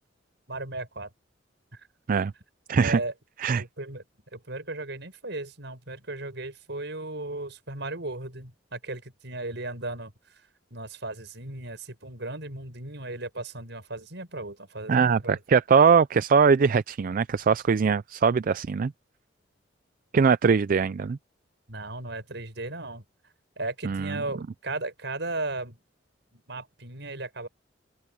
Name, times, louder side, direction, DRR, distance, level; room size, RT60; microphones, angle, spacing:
voice 1, 0.5-1.1 2.8-3.1 3.6-4.0 4.3-10.1 10.7-15.4 21.7-23.0 23.6-25.8 26.3-27.5, right 2 dB, 65° right, 7.4 m, -36 dB
voice 2, 2.7-3.0 3.4-3.6 14.9-18.9 20.1-21.2 23.8-24.2, right 5 dB, 45° right, 0.4 m, -21 dB
open air
head